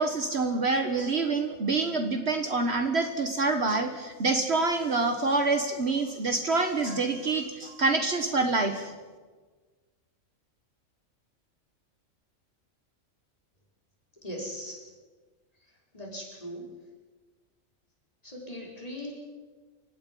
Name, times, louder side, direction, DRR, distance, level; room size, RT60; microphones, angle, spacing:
voice 1, 0.0-8.9, right 3 dB, 55° right, 7 dB, 1.5 m, -26 dB
voice 2, 14.2-14.9 15.5-16.8 18.2-19.1, equal, 25° left, -2 dB, 5.0 m, -40 dB
29.0 x 16.5 x 5.5 m, 1.4 s
omnidirectional pair, 1.4 m